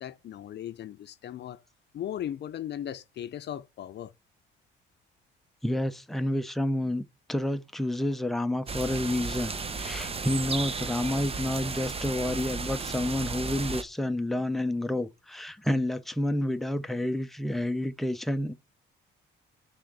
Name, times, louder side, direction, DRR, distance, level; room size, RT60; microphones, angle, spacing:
voice 1, 0.0-1.6 1.9-4.1, left 11 dB, 60° left, 0.6 m, -37 dB
voice 2, 5.6-7.0 7.3-18.5, left 1 dB, ahead, 0.7 m, -29 dB
sound 1, 8.7-13.8, right 4 dB, 30° right, 0.9 m, -34 dB
6.2 x 3.6 x 6.1 m
cardioid pair, 90°, 20 cm